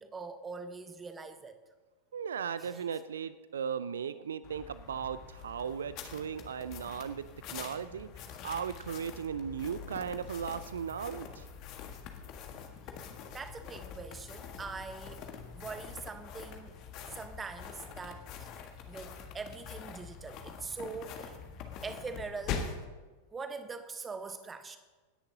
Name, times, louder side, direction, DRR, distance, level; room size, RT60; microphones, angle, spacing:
voice 1, 0.0-1.6 2.6-2.9 13.3-15.2 15.5-16.7 17.0-18.5 18.9-21.4 21.8-22.7 23.3-24.8, right 4 dB, 15° right, 10 dB, 1.1 m, -43 dB
voice 2, 2.1-11.5, right 7 dB, 65° right, 15 dB, 0.4 m, -37 dB
sound 1, 4.4-22.9, left 6 dB, 40° left, 1.5 m, -44 dB
26.0 x 10.5 x 2.8 m, 1.3 s
figure-of-eight pair, 90°, 0 cm